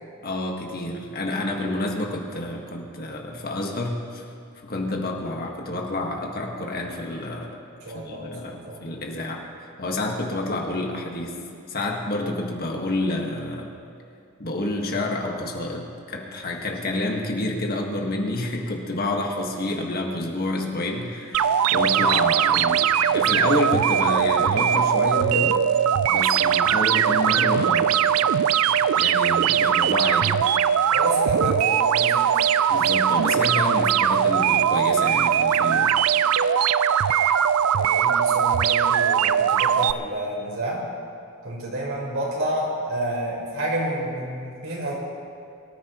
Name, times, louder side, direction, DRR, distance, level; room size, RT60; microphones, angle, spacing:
voice 1, 0.2-4.2 4.6-7.5 7.9-9.4 9.8-11.4 11.7-13.7 14.4-25.6 26.1-28.3 28.6-30.4 32.7-35.9, left 2 dB, 45° left, 0 dB, 1.7 m, -29 dB
voice 2, 7.8-8.9 30.9-32.3 37.7-40.8 41.4-44.9, right 1 dB, 65° right, -4 dB, 4.4 m, -29 dB
sound 1, 21.3-39.9, right 8 dB, 90° right, 0.4 m, -20 dB
23.5 x 14.0 x 3.1 m, 2.4 s
head